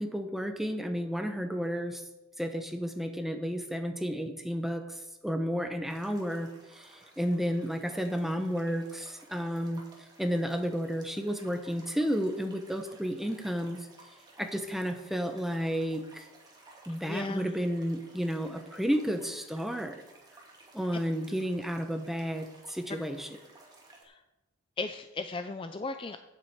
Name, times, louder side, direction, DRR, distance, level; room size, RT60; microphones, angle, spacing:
voice 1, 0.0-2.0 2.4-13.9 14.4-16.3 16.9-20.0 20.7-23.3, equal, ahead, 6 dB, 0.8 m, -32 dB
sound 1, 5.8-24.0, right 2 dB, 20° right, 1.9 m, -56 dB
voice 2, 17.1-17.6 24.0-24.1 24.8-26.2, left 3 dB, 25° left, 8 dB, 0.4 m, -36 dB
8.5 x 7.3 x 7.9 m, 1.0 s
head